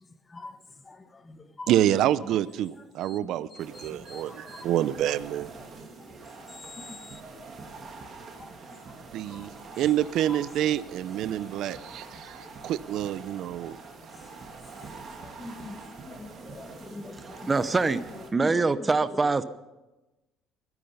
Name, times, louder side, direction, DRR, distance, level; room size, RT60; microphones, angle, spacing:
voice 1, 0.9-1.7 3.0-4.7 6.5-7.2 8.3-8.5 9.3-9.6 10.3-10.4 11.7-11.9 15.2-17.5 18.3-18.4, left 2 dB, 20° left, 1.2 m, -45 dB
voice 2, 1.7-5.5 9.1-9.5 9.8-13.8, right 12 dB, 65° right, 0.6 m, -27 dB
sound 1, 3.6-18.3, right 4 dB, 35° right, 2.8 m, -45 dB
voice 3, 17.1-18.0 18.3-19.4, right 3 dB, 20° right, 0.8 m, -24 dB
23.5 x 11.0 x 5.5 m
cardioid pair, 130°, 0 cm